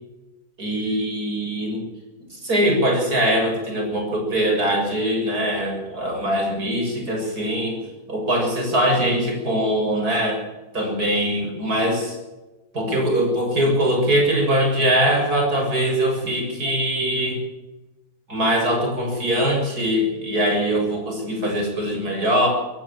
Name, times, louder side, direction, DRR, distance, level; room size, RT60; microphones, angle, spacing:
voice 1, 0.6-1.9 2.3-7.8 8.1-10.4 10.7-12.2 12.7-17.4 18.3-22.5, equal, 75° right, 1 dB, 7.6 m, -22 dB
25.5 x 14.5 x 7.6 m, 1.1 s
omnidirectional pair, 1.6 m